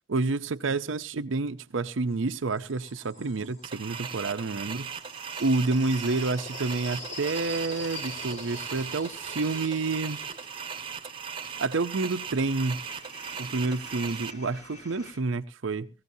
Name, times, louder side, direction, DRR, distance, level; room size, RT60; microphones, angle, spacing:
voice 1, 0.1-4.9 5.4-10.2 11.6-12.8 13.4-15.9, right 3 dB, 70° right, 0.6 m, -29 dB
sound 1, 1.5-3.9 4.8-15.2, left 1 dB, 35° left, 4.1 m, -45 dB
sound 2, 3.6-14.3, right 6 dB, 25° right, 1.0 m, -38 dB
19.5 x 15.5 x 2.7 m
head